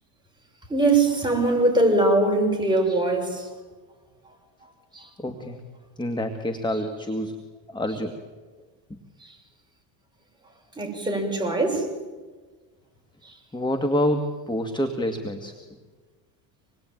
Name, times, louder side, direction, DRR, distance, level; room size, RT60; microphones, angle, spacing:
voice 1, 0.7-3.5 4.9-5.1 9.2-9.4 10.8-11.9 13.2-13.4, right 2 dB, 10° right, 0 dB, 7.2 m, -22 dB
voice 2, 5.2-5.6 6.0-7.4 7.7-8.1 8.9-9.0 13.5-15.5, left 1 dB, 10° left, 6 dB, 2.0 m, -27 dB
27.0 x 21.0 x 9.3 m, 1.4 s
supercardioid pair, 115°, 50 cm